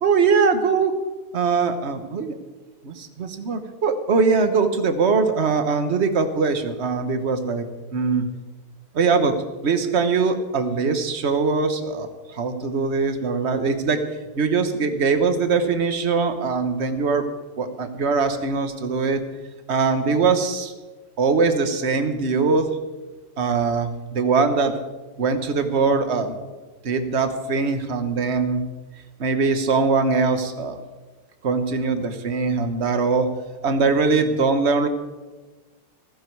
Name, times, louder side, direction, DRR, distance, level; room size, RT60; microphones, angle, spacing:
voice 1, 0.0-0.9 1.3-2.3 2.8-7.6 7.9-8.3 8.9-9.3 9.6-14.0 14.3-17.2 17.6-19.2 19.7-20.7 21.2-22.7 23.4-24.7 25.2-26.3 26.8-28.6 29.2-30.8 31.4-33.3 33.6-34.9, right 4 dB, 40° right, 8 dB, 1.1 m, -21 dB
15.0 x 15.0 x 4.7 m, 1.2 s
omnidirectional pair, 2.4 m